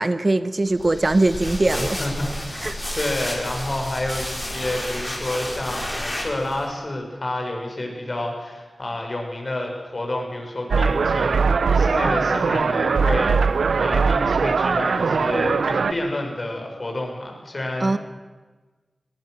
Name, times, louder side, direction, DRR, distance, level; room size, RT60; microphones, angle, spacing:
voice 1, 0.0-2.0 2.6-2.8 17.8-18.0, right 2 dB, 40° right, 12 dB, 1.0 m, -21 dB
sound 1, 0.7-6.7, left 1 dB, 25° left, 5.9 m, -31 dB
voice 2, 1.8-2.3 2.9-11.5 11.7-18.0, left 1 dB, 45° left, 2 dB, 6.2 m, -29 dB
sound 2, 10.7-15.9, right 5 dB, 90° right, 0.7 m, -20 dB
23.5 x 19.0 x 6.4 m, 1.3 s
cardioid pair, 50°, 0 cm